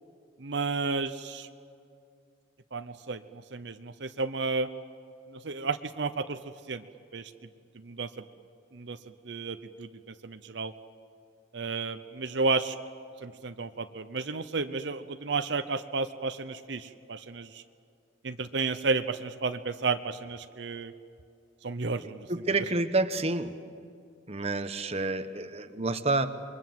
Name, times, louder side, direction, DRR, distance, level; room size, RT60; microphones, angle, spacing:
voice 1, 0.4-1.5 2.7-4.7 5.3-6.4 6.7-6.8 7.1-7.3 7.8-8.1 8.7-9.0 9.2-9.9 10.2-10.7 11.5-12.8 13.2-17.6 18.2-20.9 21.6-22.6, right 4 dB, 65° right, 9 dB, 0.8 m, -32 dB
voice 2, 22.3-23.5 24.3-26.3, right 2 dB, 35° right, 9 dB, 1.0 m, -28 dB
28.0 x 22.5 x 7.8 m, 2.5 s
head